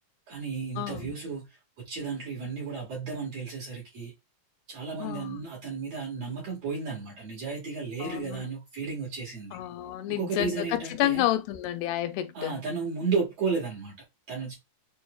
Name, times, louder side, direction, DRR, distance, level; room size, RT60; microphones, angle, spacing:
voice 1, 0.3-1.5 1.8-4.1 4.7-9.6 10.1-11.2 12.3-13.9 14.3-14.5, right 4 dB, 55° right, 2.1 m, -33 dB
voice 2, 0.8-1.2 5.0-5.4 8.0-8.4 9.5-12.6, left 14 dB, 85° left, 2.5 m, -30 dB
6.9 x 2.4 x 2.2 m
omnidirectional pair, 4.6 m